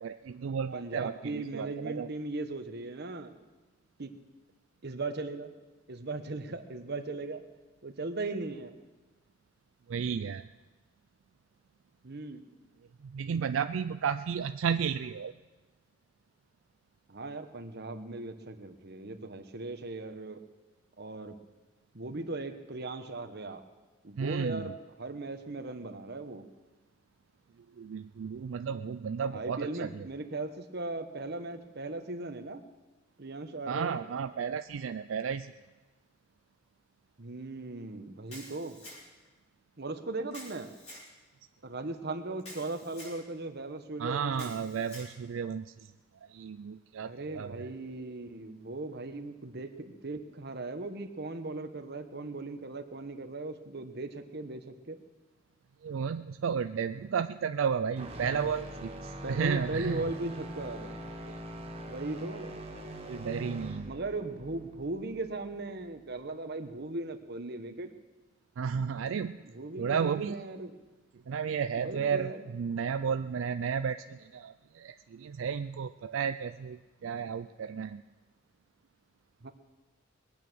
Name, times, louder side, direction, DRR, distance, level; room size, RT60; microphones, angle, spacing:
voice 1, 0.0-2.1 9.9-10.5 13.0-15.3 24.2-24.7 27.8-30.0 33.7-35.5 44.0-45.7 46.3-47.7 55.8-60.0 61.2-61.4 63.1-63.9 68.6-69.4 69.8-70.4 71.3-78.0, right 6 dB, 80° right, 10 dB, 0.4 m, -33 dB
voice 2, 0.7-3.3 4.0-4.1 4.8-5.5 5.9-7.4 7.8-8.8 12.0-12.4 17.1-20.4 21.0-21.3 21.9-23.6 24.0-26.5 29.3-32.6 33.2-34.0 37.2-38.8 39.8-40.7 41.6-44.5 47.0-55.0 59.2-60.9 61.9-62.6 63.8-67.9 69.4-70.8 71.8-72.5 79.4-79.5, right 2 dB, 55° right, 7 dB, 1.1 m, -38 dB
Camera, 38.3-39.3 40.3-41.1 42.4-43.2 44.3-45.1, left 1 dB, 35° left, 5.4 m, -48 dB
sound 1, 58.0-66.1, equal, 30° right, 1.5 m, -42 dB
21.5 x 8.9 x 6.2 m, 1.2 s
head